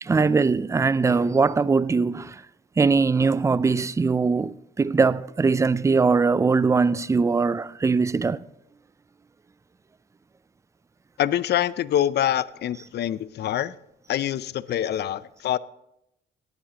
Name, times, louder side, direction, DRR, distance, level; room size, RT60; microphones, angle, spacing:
voice 1, 0.0-2.4 2.8-8.4, right 4 dB, 15° right, 0.3 m, -21 dB
voice 2, 11.2-13.8 14.1-15.6, left 11 dB, 55° left, 0.5 m, -25 dB
18.0 x 9.4 x 2.9 m
cardioid pair, 90°, 20 cm